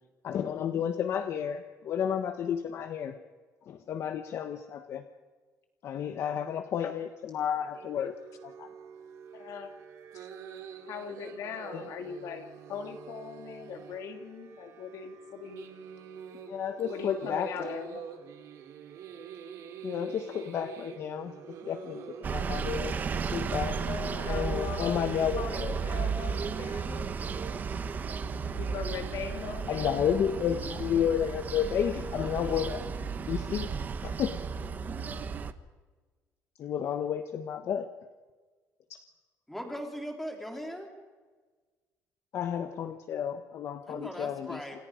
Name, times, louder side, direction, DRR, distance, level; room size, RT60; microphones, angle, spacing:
voice 1, 0.2-3.2 3.6-5.0 5.8-8.2 8.4-8.7 11.7-11.9 16.5-18.0 19.8-23.8 24.3-25.8 29.7-33.7 34.0-34.4 36.6-37.9 38.9-39.0 42.3-44.6, left 8 dB, 50° left, 8 dB, 1.2 m, -32 dB
voice 2, 7.6-8.1 9.3-9.8 10.1-10.3 10.9-15.7 16.9-18.0 23.7-25.1 25.4-27.2 28.2-29.9, left 6 dB, 65° left, 5 dB, 2.8 m, -40 dB
sound 1, 7.7-24.8, right 7 dB, 65° right, 3.6 m, -46 dB
sound 2, 22.2-35.5, right 5 dB, 30° right, 1.1 m, -34 dB
voice 3, 39.5-40.9 43.9-44.8, equal, 5° left, 2 dB, 3.8 m, -39 dB
29.0 x 28.0 x 5.1 m, 1.4 s
cardioid pair, 165°, 6 cm